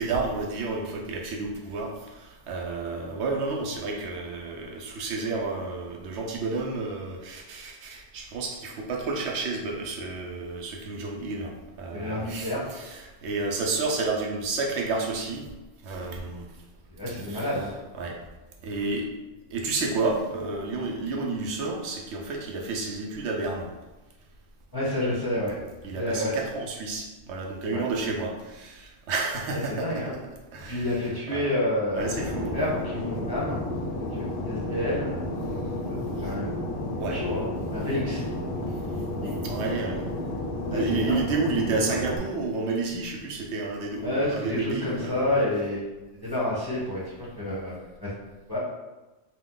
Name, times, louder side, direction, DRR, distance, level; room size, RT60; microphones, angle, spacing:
voice 1, 0.0-15.5 15.8-16.5 17.3-17.4 18.0-18.2 18.6-19.1 19.5-23.7 25.8-30.0 30.5-30.8 31.3-31.5 31.9-32.6 37.0-37.2 38.9-39.0 39.4-40.1 40.7-45.4, right 3 dB, 80° right, 0 dB, 0.9 m, -30 dB
voice 2, 11.9-12.7 16.9-17.7 24.7-25.5 25.9-26.3 27.7-27.8 29.5-30.1 30.7-32.1 32.5-33.6 34.1-35.1 35.8-36.5 37.1-38.2 39.2-39.3 40.7-41.2 44.0-45.9 46.2-48.1 48.5-48.6, left 1 dB, 25° left, -8 dB, 0.6 m, -29 dB
Fixed-wing aircraft airplane, 32.0-42.2, left 1 dB, 60° left, 0.7 m, -32 dB
2.8 x 2.2 x 3.6 m, 1.1 s
omnidirectional pair, 1.1 m